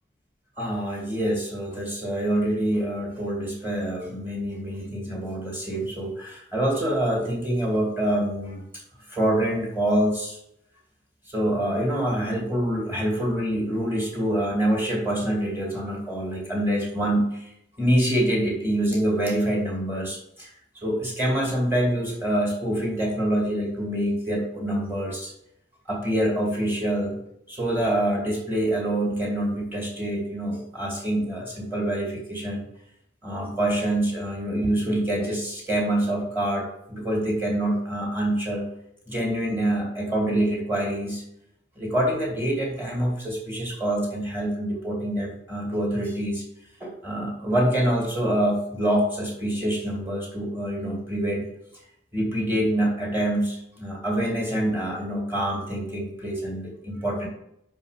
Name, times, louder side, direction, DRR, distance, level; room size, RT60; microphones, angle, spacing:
voice 1, 0.6-8.6 9.1-10.4 11.3-17.5 17.8-25.3 25.9-27.2 27.5-32.7 33.2-38.7 39.1-41.2 41.8-46.4 46.8-51.5 52.1-57.3, right 1 dB, 10° right, -2 dB, 2.3 m, -26 dB
5.8 x 5.1 x 6.6 m, 0.78 s
head